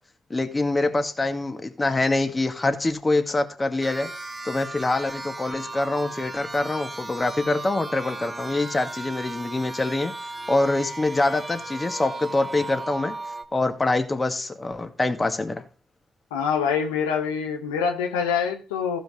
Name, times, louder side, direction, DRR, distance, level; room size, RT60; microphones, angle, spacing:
voice 1, 0.3-4.1 4.4-10.1 10.5-13.2 13.5-15.6, left 2 dB, 30° left, 7 dB, 2.0 m, -25 dB
sound 1, 3.8-13.4, right 2 dB, 10° right, 2.0 m, -36 dB
voice 2, 16.3-19.0, left 6 dB, 85° left, 4 dB, 0.9 m, -25 dB
15.0 x 5.1 x 4.9 m, 0.36 s
hypercardioid pair, 40°, 0 cm